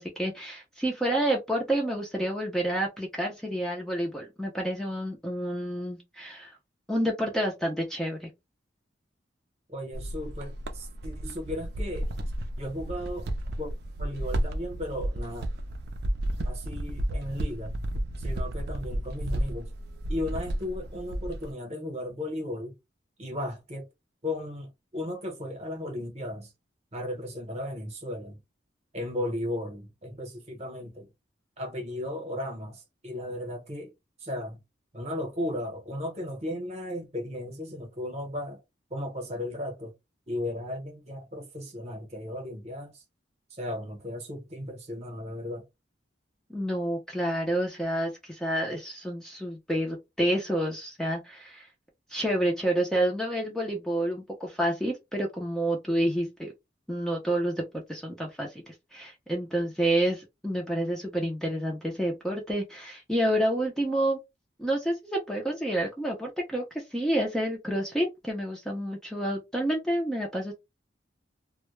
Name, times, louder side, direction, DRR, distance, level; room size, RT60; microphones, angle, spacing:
voice 1, 0.0-6.5 6.9-8.3 46.5-51.7 52.1-56.5 56.9-64.2 64.6-70.5, right 1 dB, 5° left, 0.4 m, -29 dB
voice 2, 9.7-12.1 12.6-13.3 13.5-13.7 14.0-15.5 16.4-17.7 18.2-19.7 20.1-22.7 23.2-23.9 24.2-26.5 26.9-28.4 28.9-31.1 31.6-33.9 34.2-34.6 34.9-38.6 38.9-39.9 40.3-43.0 43.5-45.6, left 1 dB, 35° right, 0.8 m, -35 dB
sound 1, 9.9-21.5, right 1 dB, 60° right, 0.4 m, -32 dB
2.1 x 2.0 x 3.0 m
head